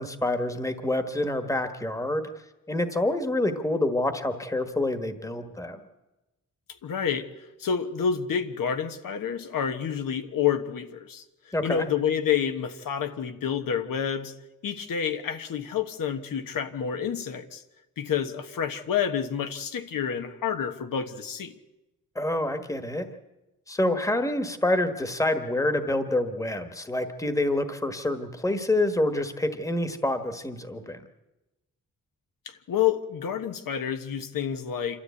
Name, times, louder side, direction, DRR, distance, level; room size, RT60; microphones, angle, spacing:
voice 1, 0.0-2.3 2.7-5.8 11.5-11.9 22.1-23.1 23.7-31.0, left 1 dB, 10° left, 8 dB, 1.3 m, -27 dB
voice 2, 6.8-7.3 7.6-11.2 11.6-14.3 14.6-17.6 18.0-21.5 32.7-35.0, left 8 dB, 80° left, 7 dB, 1.3 m, -28 dB
27.5 x 13.0 x 8.4 m, 1.0 s
wide cardioid pair, 150°, 33 cm